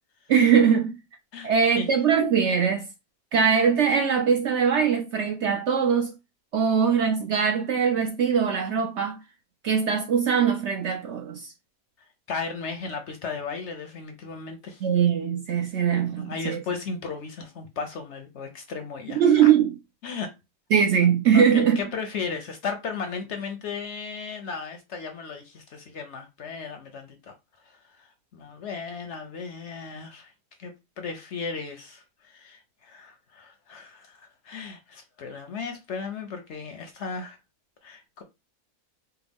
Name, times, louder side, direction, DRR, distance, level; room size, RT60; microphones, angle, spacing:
voice 1, 0.3-1.0 1.4-2.9 3.3-6.1 6.5-9.2 9.6-11.5 14.8-16.6 19.1-19.7 20.7-21.8, right 7 dB, 65° right, 0.7 m, -21 dB
voice 2, 1.3-1.9 12.3-14.8 16.1-19.5 20.0-20.3 21.3-27.3 27.6-30.3 30.6-37.4 37.8-38.2, left 5 dB, 65° left, 0.8 m, -35 dB
4.6 x 2.1 x 3.4 m
omnidirectional pair, 1.6 m